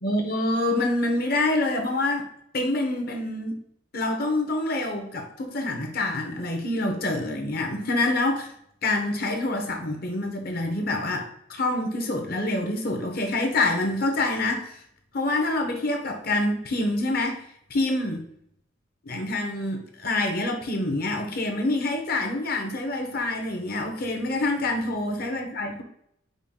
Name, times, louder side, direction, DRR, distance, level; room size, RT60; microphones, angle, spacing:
voice 1, 0.0-2.3 2.5-3.6 3.9-8.5 8.8-14.8 15.1-18.3 19.0-25.8, left 2 dB, 50° left, 3 dB, 0.8 m, -26 dB
5.2 x 2.3 x 3.6 m, 0.71 s
head